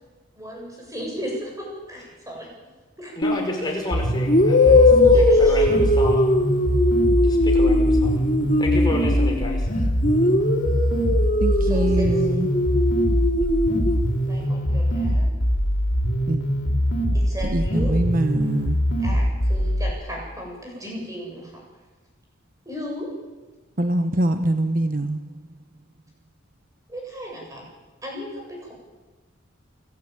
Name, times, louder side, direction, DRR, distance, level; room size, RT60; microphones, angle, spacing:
voice 1, 0.4-3.1 5.0-5.7 11.6-12.4 14.3-15.3 17.1-18.0 19.0-21.5 22.7-23.1 26.9-27.6 28.0-28.7, equal, 15° right, 7.3 m, -35 dB
sound 1, 3.2-3.5 4.3-9.6 10.0-14.0, left 2 dB, 40° left, 2.2 m, -20 dB
voice 2, 3.2-6.3 7.2-8.3 8.6-9.7, left 1 dB, 20° left, 5.6 m, -30 dB
sound 2, 3.9-19.9, equal, 85° left, 3.6 m, -23 dB
voice 3, 11.4-12.6 16.3-16.4 17.5-18.8 23.8-25.2, right 1 dB, 45° right, 0.9 m, -24 dB
29.0 x 12.5 x 9.1 m
head